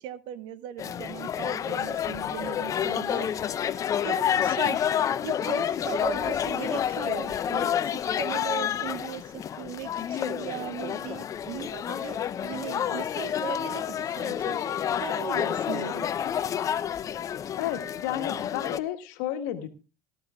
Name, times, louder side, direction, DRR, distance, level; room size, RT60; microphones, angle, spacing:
voice 1, 0.0-3.3 4.0-4.8 5.2-14.6 15.0-16.1, right 11 dB, 55° right, 17 dB, 0.9 m, -38 dB
sound 1, 0.8-18.8, left 9 dB, 35° left, 0.7 m, -29 dB
voice 2, 17.6-19.7, left 12 dB, 65° left, 6 dB, 1.5 m, -32 dB
19.0 x 12.5 x 2.4 m, 0.32 s
hypercardioid pair, 75°, 9 cm